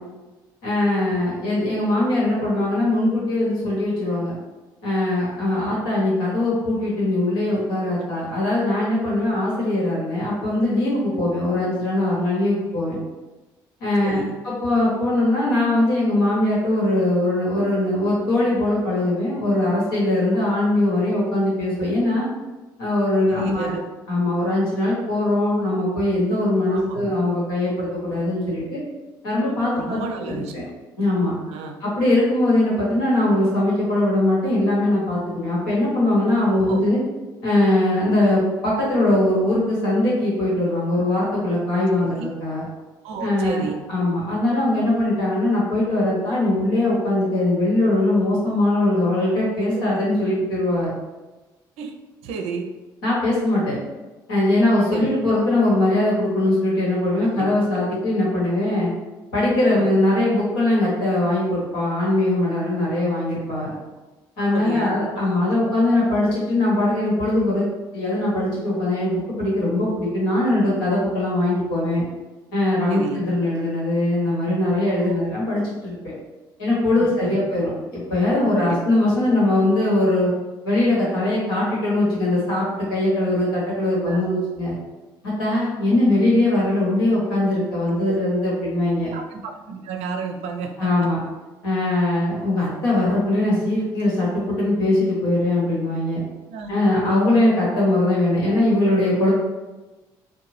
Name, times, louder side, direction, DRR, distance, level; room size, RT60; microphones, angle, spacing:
voice 1, 0.6-4.3 4.8-13.0 13.8-22.3 22.8-23.7 24.1-28.8 29.2-30.6 31.0-31.3 31.8-37.0 37.4-42.6 43.2-50.9 53.0-53.8 54.3-58.9 59.3-63.7 64.4-67.7 67.9-72.0 72.5-75.9 76.6-80.3 80.6-84.7 85.4-89.1 90.8-91.2 91.6-96.2 96.7-99.3, left 1 dB, 90° left, -6 dB, 1.1 m, -21 dB
voice 2, 14.0-14.3 23.3-23.9 26.7-27.0 29.7-30.7 31.5-31.8 36.5-36.9 42.0-42.3 43.0-43.8 49.7-49.8 51.8-51.9 52.2-52.7 54.9-55.1 57.2-57.5 59.7-59.9 64.5-65.2 72.9-73.2 75.0-75.2 77.0-77.4 78.6-78.8 84.1-84.2 88.1-88.2 89.1-91.1 96.5-96.7, right 5 dB, 70° right, 4 dB, 0.4 m, -32 dB
2.7 x 2.1 x 3.1 m, 1.1 s
hypercardioid pair, 55°, 11 cm